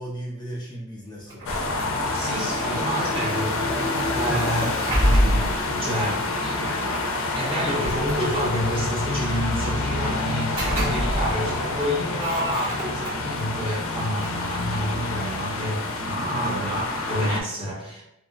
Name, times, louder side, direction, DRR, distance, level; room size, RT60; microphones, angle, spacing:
voice 1, 0.0-1.4 4.3-4.8 16.3-16.6, equal, 20° left, -5 dB, 0.7 m, -34 dB
sound 1, 1.3-2.4 4.4-5.7 6.9-7.0 7.6-8.7 10.3-11.5 11.8-13.4 13.9-15.5, equal, 70° right, 1.3 m, -27 dB
sound 2, 1.5-17.4, left 2 dB, 70° left, 0.4 m, -28 dB
voice 2, 1.9-7.0 7.3-18.0, equal, 25° right, -6 dB, 0.6 m, -29 dB
sound 3, 2.7-11.9, equal, 90° right, 1.4 m, -44 dB
2.8 x 2.0 x 2.4 m, 0.84 s
head